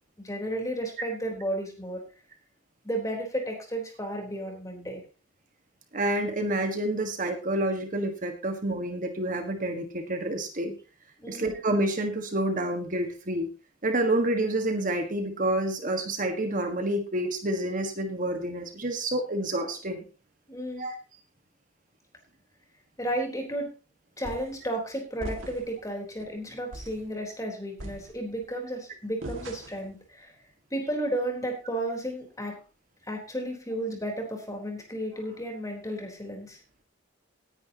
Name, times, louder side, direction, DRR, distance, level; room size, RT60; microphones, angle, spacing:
voice 1, 0.2-2.0 2.8-5.0 11.2-11.6 20.5-20.8 23.0-23.7 24.2-30.3 30.7-32.6 33.1-36.6, right 1 dB, 15° left, 1 dB, 3.9 m, -33 dB
voice 2, 5.9-10.7 11.3-13.5 13.8-20.0 20.8-20.9, right 1 dB, 40° right, 5 dB, 1.6 m, -28 dB
sound 1, 24.2-24.6 25.2-25.8 26.2-26.3 26.7-27.1 27.8-28.5 29.2-29.9, right 2 dB, 85° right, 2.1 m, -40 dB
19.0 x 10.0 x 2.9 m, 0.34 s
head